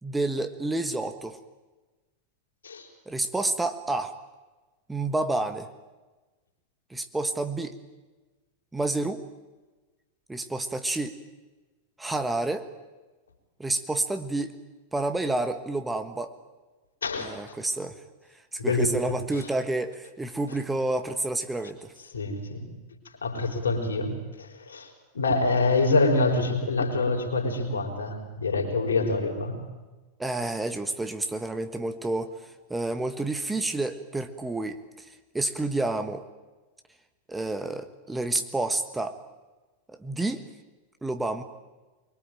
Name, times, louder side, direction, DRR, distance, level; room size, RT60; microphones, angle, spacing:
voice 1, 0.0-1.4 3.1-4.1 4.9-5.7 6.9-7.7 8.7-9.2 10.3-11.2 12.0-12.7 13.6-14.6 14.9-16.3 17.2-18.0 18.5-21.9 30.2-35.0 35.3-36.2 37.3-39.2 39.9-40.4 41.0-41.4, right 2 dB, 10° right, 8 dB, 1.5 m, -29 dB
voice 2, 17.0-17.4 18.6-18.9 19.3-19.5 22.1-22.7 23.2-24.9 25.1-29.6, left 3 dB, 70° left, 2 dB, 4.8 m, -26 dB
24.5 x 23.0 x 9.0 m, 1.2 s
figure-of-eight pair, 90°, 0 cm